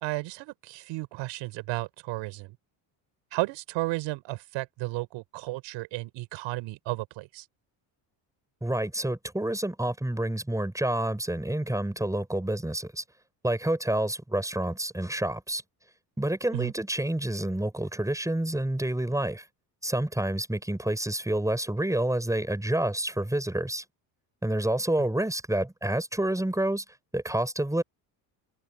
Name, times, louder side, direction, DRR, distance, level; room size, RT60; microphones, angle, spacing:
voice 1, 0.0-2.6 3.3-7.4 16.5-16.7, right 20 dB, 80° right, 6.4 m, -33 dB
voice 2, 8.6-13.0 13.4-15.6 16.2-19.4 19.8-23.8 24.4-26.8 27.1-27.8, right 1 dB, 5° right, 8.0 m, -28 dB
supercardioid pair, 80°, 45 cm